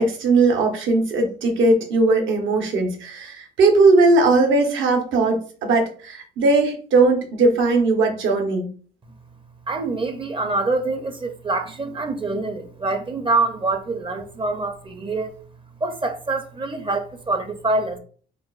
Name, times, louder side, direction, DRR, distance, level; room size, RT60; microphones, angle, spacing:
voice 1, 0.0-8.7, right 3 dB, 75° right, 0.9 m, -18 dB
voice 2, 9.7-15.4 15.8-18.0, right 3 dB, 25° right, 0.5 m, -25 dB
4.6 x 2.0 x 2.4 m
cardioid pair, 90°, 20 cm